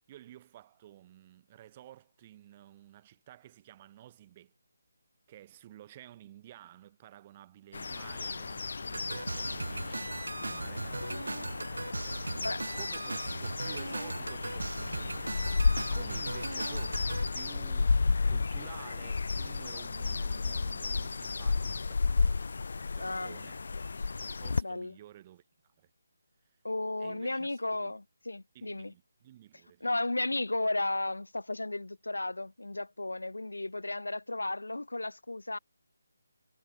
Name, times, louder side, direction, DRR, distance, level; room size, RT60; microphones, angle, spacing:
voice 1, 0.1-4.5 5.3-12.5 12.7-22.5 22.9-23.6 24.4-25.9 27.0-27.9 28.5-30.0, right 13 dB, 25° right, 6.4 m, -53 dB
sound 1, 7.7-24.6, left 4 dB, 60° left, 3.6 m, -33 dB
sound 2, 8.9-17.3, right 2 dB, 80° right, 1.0 m, -38 dB
voice 2, 23.0-23.4 24.6-25.0 26.6-28.9 29.8-35.6, left 2 dB, 85° left, 1.6 m, -34 dB
figure-of-eight pair, 155°, 0 cm